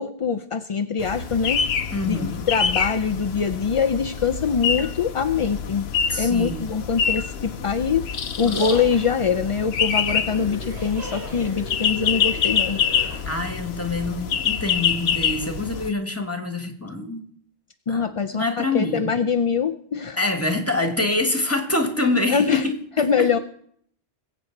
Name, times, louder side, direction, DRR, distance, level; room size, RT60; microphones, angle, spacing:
voice 1, 0.0-1.6 2.0-5.9 6.2-8.1 8.4-13.1 17.9-20.2 22.3-22.6 23.0-23.4, left 6 dB, 45° left, 6 dB, 0.4 m, -23 dB
sound 1, 1.0-15.9, left 7 dB, 70° left, 1.0 m, -26 dB
voice 2, 1.9-2.5 6.1-6.6 13.3-17.2 17.9-19.1 20.2-23.3, left 2 dB, 15° left, 6 dB, 1.6 m, -25 dB
sound 2, 7.9-14.0, equal, 70° right, 7.2 m, -37 dB
21.0 x 8.2 x 4.6 m, 0.65 s
omnidirectional pair, 1.1 m